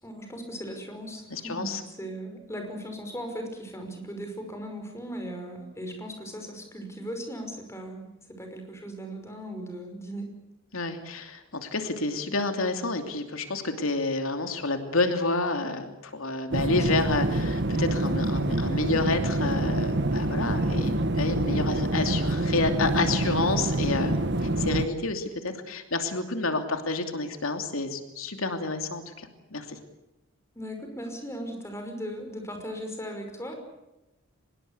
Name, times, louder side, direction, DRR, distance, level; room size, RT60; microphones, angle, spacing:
voice 1, 0.0-10.3 16.6-16.8 30.6-33.5, equal, 15° left, 5 dB, 5.6 m, -38 dB
voice 2, 1.3-1.8 10.7-24.2 24.6-29.8, left 3 dB, 90° left, 7 dB, 2.9 m, -29 dB
sound 1, 16.5-24.9, right 1 dB, 55° right, 1.4 m, -26 dB
25.0 x 21.0 x 8.2 m, 0.94 s
head